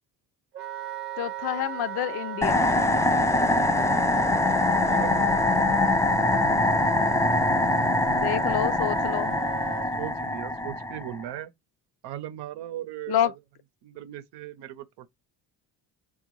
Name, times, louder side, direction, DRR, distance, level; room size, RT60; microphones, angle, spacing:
Wind instrument woodwind instrument, 0.5-9.9, right 11 dB, 35° right, 0.8 m, -36 dB
voice 1, 1.2-2.7 8.2-9.3 13.1-13.3, left 11 dB, 70° left, 0.5 m, -28 dB
sound 1, 2.4-11.2, left 2 dB, 10° left, 0.3 m, -23 dB
voice 2, 4.9-5.4 9.9-11.5 12.0-13.3 13.8-15.1, right 12 dB, 85° right, 0.7 m, -37 dB
3.7 x 2.3 x 2.9 m
cardioid pair, 110°, 40 cm